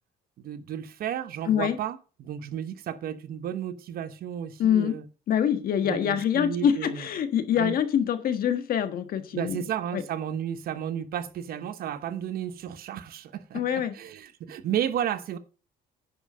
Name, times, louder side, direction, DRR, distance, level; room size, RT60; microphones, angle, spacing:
voice 1, 0.4-5.0 5.8-7.1 7.6-7.7 9.3-15.4, right 9 dB, 65° right, 1.0 m, -33 dB
voice 2, 1.4-1.8 4.6-5.0 5.3-9.6 9.9-10.0 13.5-14.0, left 9 dB, 60° left, 1.4 m, -25 dB
10.5 x 5.6 x 5.5 m
cardioid pair, 110°, 17 cm